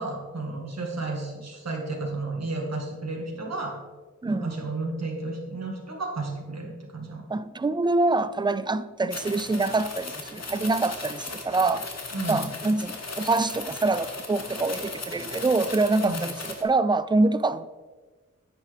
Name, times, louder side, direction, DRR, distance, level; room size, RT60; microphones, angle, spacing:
voice 1, 0.0-3.8 4.3-7.2 12.1-12.4 16.0-16.2, right 2 dB, 55° right, 2.0 m, -32 dB
voice 2, 4.2-4.6 7.3-11.9 12.3-16.4 16.6-17.7, right 3 dB, 15° right, 0.3 m, -25 dB
sound 1, 9.1-16.6, left 3 dB, 55° left, 1.4 m, -37 dB
10.5 x 8.4 x 3.5 m
wide cardioid pair, 110°, 31 cm